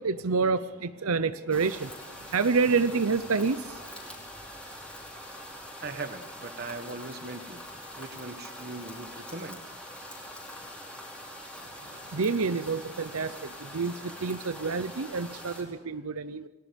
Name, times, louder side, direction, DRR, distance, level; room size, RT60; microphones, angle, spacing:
voice 1, 0.0-3.9 12.0-16.5, right 4 dB, 85° right, 13 dB, 0.7 m, -28 dB
sound 1, 1.5-15.6, left 1 dB, 5° left, 5.1 m, -44 dB
voice 2, 5.8-7.6 8.0-9.6, right 3 dB, 45° right, 9 dB, 1.5 m, -39 dB
29.0 x 21.0 x 5.3 m, 1.2 s
head